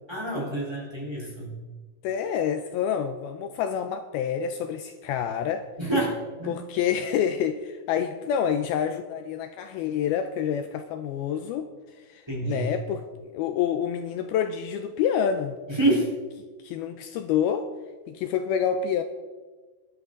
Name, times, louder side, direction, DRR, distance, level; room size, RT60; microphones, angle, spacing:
voice 1, 0.1-1.6 5.8-6.5 12.3-12.7 15.7-16.1, right 1 dB, 5° right, -3 dB, 3.4 m, -27 dB
voice 2, 2.0-5.7 6.5-13.0 13.3-15.6 16.6-17.7 18.1-19.0, left 8 dB, 80° left, 8 dB, 2.4 m, -28 dB
20.5 x 11.5 x 3.9 m, 1.3 s
omnidirectional pair, 4.8 m